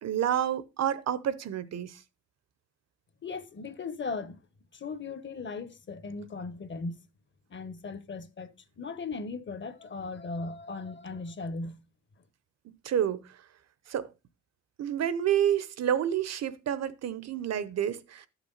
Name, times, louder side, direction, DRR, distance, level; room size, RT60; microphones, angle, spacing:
voice 1, 0.0-2.0 12.8-13.4 13.9-14.1 14.8-18.3, right 10 dB, 60° right, 0.8 m, -29 dB
voice 2, 3.2-4.4 4.7-7.0 7.5-8.5 8.8-11.8, left 4 dB, 40° left, 1.2 m, -37 dB
11.5 x 6.1 x 3.9 m
cardioid pair, 90°, 30 cm